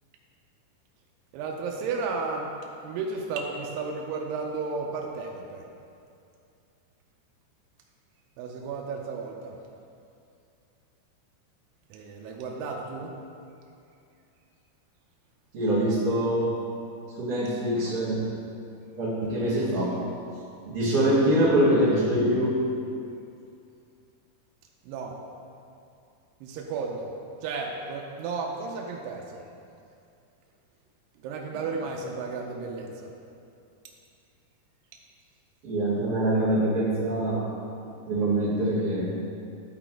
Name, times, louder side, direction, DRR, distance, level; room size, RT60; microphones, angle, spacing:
voice 1, 1.3-2.5 2.8-5.7 8.4-9.6 11.9-13.1 24.8-25.2 26.4-27.1 27.4-29.4 31.2-33.1, right 4 dB, 85° right, 0 dB, 2.7 m, -33 dB
voice 2, 15.5-16.5 17.2-18.2 18.9-20.0 20.6-22.6 31.5-31.6 35.6-37.5 38.0-39.1, right 1 dB, 55° right, -9 dB, 1.7 m, -24 dB
11.0 x 4.1 x 4.4 m, 2.5 s
omnidirectional pair, 4.7 m